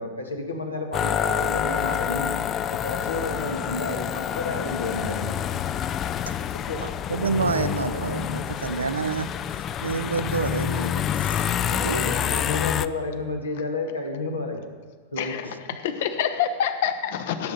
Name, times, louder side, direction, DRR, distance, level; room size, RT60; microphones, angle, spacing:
voice 1, 0.0-2.3 2.7-5.4 6.5-6.9 11.9-14.7 15.1-15.4, left 2 dB, 80° left, 1.6 m, -31 dB
sound 1, 0.9-12.9, left 9 dB, 30° left, 0.4 m, -27 dB
voice 2, 6.8-12.1, right 5 dB, 75° right, 0.4 m, -29 dB
voice 3, 15.2-15.5 15.8-17.5, left 8 dB, 55° left, 1.0 m, -26 dB
17.0 x 7.5 x 4.1 m
figure-of-eight pair, 90°, 0 cm